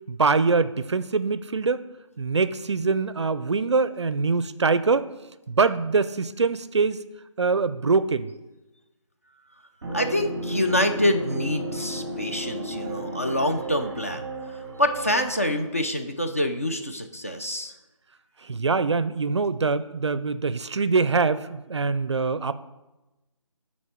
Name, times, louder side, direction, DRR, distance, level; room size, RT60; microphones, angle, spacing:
voice 1, 0.1-1.8 2.2-5.1 5.5-7.0 7.4-8.3 18.4-22.5, right 4 dB, 55° right, 14 dB, 0.4 m, -23 dB
sound 1, 9.8-15.5, right 1 dB, 15° right, 0.8 m, -34 dB
voice 2, 9.9-14.3 14.8-17.8, left 1 dB, 25° left, 5 dB, 0.5 m, -26 dB
12.0 x 4.3 x 4.4 m, 1.0 s
figure-of-eight pair, 175°, 17 cm